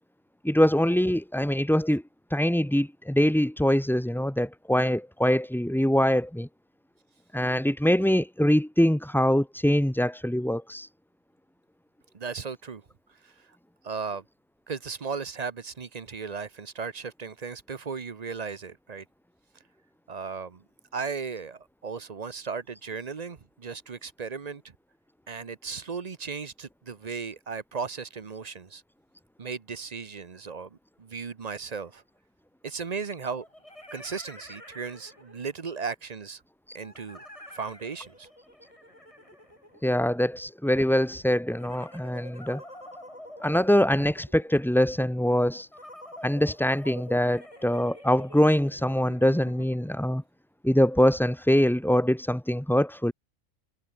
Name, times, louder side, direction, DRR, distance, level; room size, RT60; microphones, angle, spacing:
voice 1, 0.4-2.0 2.3-6.5 7.3-10.9 39.8-42.6 43.4-45.7 46.2-50.2 50.6-53.1, equal, 5° left, 0.3 m, -23 dB
voice 2, 12.1-12.8 13.2-13.5 13.8-14.2 14.7-19.0 20.1-20.6 20.9-24.6 25.3-28.8 29.4-32.0 32.6-33.5 33.9-36.4 36.7-37.2 37.5-38.3, right 5 dB, 35° right, 0.7 m, -36 dB
Comic Ghost Voice, 31.8-31.9 33.2-35.6 36.8-40.3 41.5-44.5 45.7-50.0, left 1 dB, 20° left, 7.3 m, -47 dB
omnidirectional pair, 1.6 m